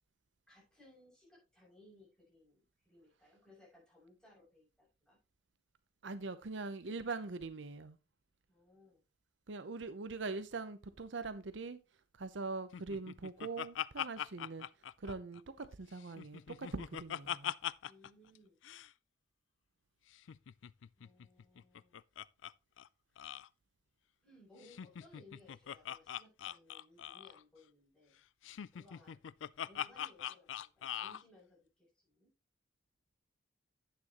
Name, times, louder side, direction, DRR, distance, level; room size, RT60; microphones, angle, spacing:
voice 1, 0.5-5.2 8.5-9.0 17.8-18.6 21.0-22.0 24.2-28.2 28.7-29.2 29.6-32.3, left 2 dB, 5° left, 6.5 m, -63 dB
voice 2, 6.0-8.0 9.5-11.8 12.2-14.6 15.0-17.5, right 3 dB, 70° right, 0.7 m, -42 dB
Laughter, 12.7-15.7 16.0-18.1 18.3-18.4 18.6-18.9 20.1-22.5 22.8-22.9 23.2-23.5 24.6-27.4 28.4-31.2, left 10 dB, 80° left, 0.4 m, -42 dB
10.0 x 8.6 x 3.0 m
head